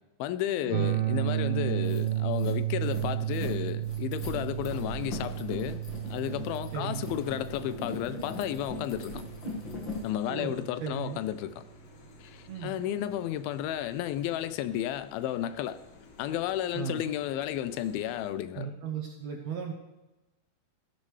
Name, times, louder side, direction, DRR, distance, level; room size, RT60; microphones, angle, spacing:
voice 1, 0.2-5.8 6.1-9.2 10.0-11.6 12.2-15.8 16.2-18.7, left 11 dB, 85° left, 2.4 m, -32 dB
sound 1, 0.7-10.6, right 13 dB, 90° right, 2.6 m, -33 dB
sound 2, 1.2-1.3 1.7-10.1, left 2 dB, 50° left, 1.5 m, -40 dB
voice 2, 6.7-7.1 10.3-11.2 12.5-12.8 16.7-17.1 18.5-19.7, right 7 dB, 70° right, 1.7 m, -36 dB
sound 3, 9.2-18.3, left 4 dB, 70° left, 3.2 m, -55 dB
16.0 x 11.0 x 3.2 m
omnidirectional pair, 4.3 m